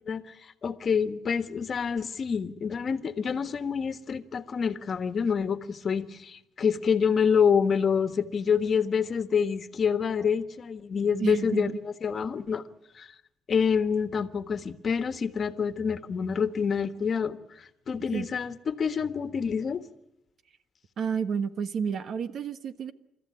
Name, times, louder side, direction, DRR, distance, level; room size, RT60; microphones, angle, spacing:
voice 1, 0.6-12.6 13.0-13.1 13.5-19.8, left 6 dB, 45° left, 11 dB, 1.5 m, -27 dB
voice 2, 11.2-11.8 18.1-18.3 21.0-22.9, right 6 dB, 65° right, 11 dB, 1.3 m, -30 dB
29.5 x 14.0 x 9.7 m, 0.84 s
cardioid pair, 100°, 0 cm